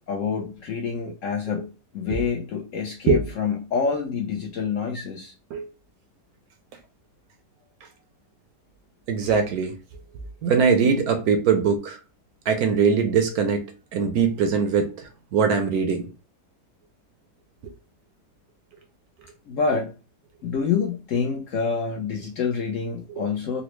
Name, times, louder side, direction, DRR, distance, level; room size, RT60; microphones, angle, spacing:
voice 1, 0.1-1.7 1.9-5.3 19.5-19.9 20.4-23.6, left 5 dB, 65° left, 0.8 m, -27 dB
voice 2, 9.1-9.7 10.4-12.0 12.5-13.7 13.9-16.1, right 6 dB, 70° right, 1.0 m, -21 dB
3.9 x 2.0 x 3.0 m
omnidirectional pair, 1.8 m